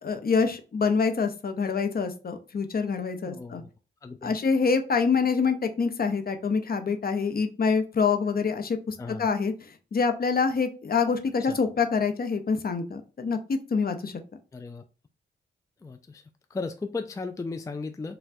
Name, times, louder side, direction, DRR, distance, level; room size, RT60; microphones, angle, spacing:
voice 1, 0.0-3.6 4.2-14.2, left 5 dB, 45° left, 7 dB, 0.7 m, -26 dB
voice 2, 3.2-3.7 4.0-4.4 9.0-9.3 11.4-11.6 14.5-14.8 15.8-16.2 16.5-18.2, left 3 dB, 15° left, 7 dB, 0.3 m, -36 dB
4.3 x 2.2 x 2.6 m, 0.34 s
cardioid pair, 60°, 21 cm